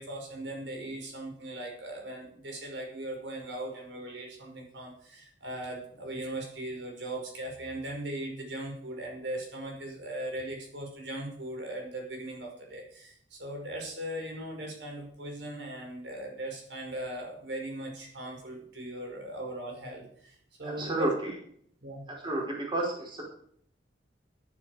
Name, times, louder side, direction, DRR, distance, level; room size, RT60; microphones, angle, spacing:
voice 1, 0.0-21.1 21.8-22.0, right 1 dB, 80° right, 1 dB, 5.5 m, -39 dB
voice 2, 20.8-21.3 22.2-23.2, right 2 dB, 25° right, -2 dB, 4.9 m, -30 dB
14.0 x 12.0 x 5.0 m, 0.64 s
head